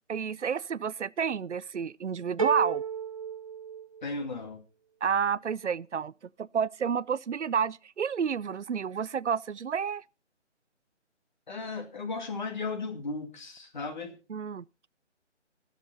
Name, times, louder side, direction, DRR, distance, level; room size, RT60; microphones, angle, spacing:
voice 1, 0.1-2.8 5.0-6.1 6.4-10.0 14.3-14.7, right 7 dB, 75° right, 0.6 m, -30 dB
sound 1, 2.4-4.4, right 7 dB, 30° right, 0.6 m, -33 dB
voice 2, 4.0-4.6 11.5-14.2, left 3 dB, 40° left, 2.3 m, -35 dB
22.0 x 7.6 x 4.0 m
figure-of-eight pair, 150°, 36 cm